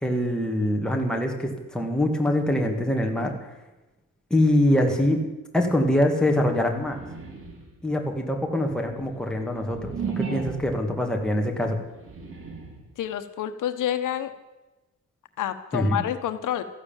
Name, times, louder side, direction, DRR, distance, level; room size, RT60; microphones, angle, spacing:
voice 1, 0.0-3.3 4.3-5.2 5.5-7.0 7.8-11.8 15.7-16.0, left 1 dB, ahead, 1 dB, 2.3 m, -24 dB
sound 1, 6.7-7.8 8.4-10.9 11.8-12.9, right 6 dB, 45° right, 3.4 m, -35 dB
voice 2, 13.0-14.3 15.4-16.6, left 11 dB, 85° left, 9 dB, 1.2 m, -28 dB
14.0 x 11.5 x 9.1 m, 1.0 s
cardioid pair, 155°, 30 cm